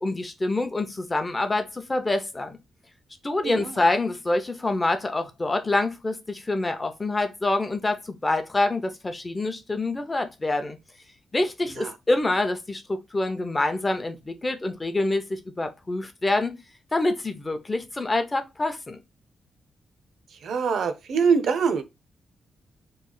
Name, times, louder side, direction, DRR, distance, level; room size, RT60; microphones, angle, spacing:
voice 1, 0.0-2.6 3.2-10.8 11.3-16.5 16.9-19.0, left 2 dB, 20° left, 0.6 m, -26 dB
voice 2, 20.4-21.8, right 5 dB, 65° right, 0.5 m, -23 dB
3.1 x 2.4 x 3.7 m
wide cardioid pair, 140°, 0 cm